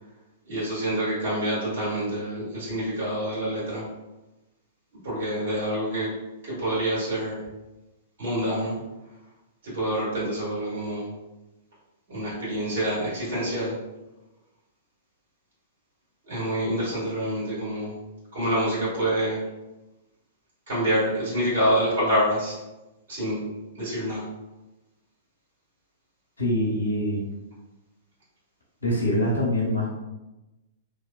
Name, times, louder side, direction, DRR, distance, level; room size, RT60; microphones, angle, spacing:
voice 1, 0.4-3.8 5.0-6.1 6.4-7.4 8.2-8.8 9.6-11.1 12.1-13.7 16.2-17.9 18.3-19.4 20.7-22.6 23.1-23.4 23.7-24.3, right 1 dB, 55° right, -10 dB, 1.4 m, -27 dB
voice 2, 26.4-27.3 28.8-29.9, left 1 dB, 80° left, -5 dB, 0.8 m, -24 dB
2.6 x 2.1 x 2.3 m, 1.0 s
figure-of-eight pair, 105°, 0 cm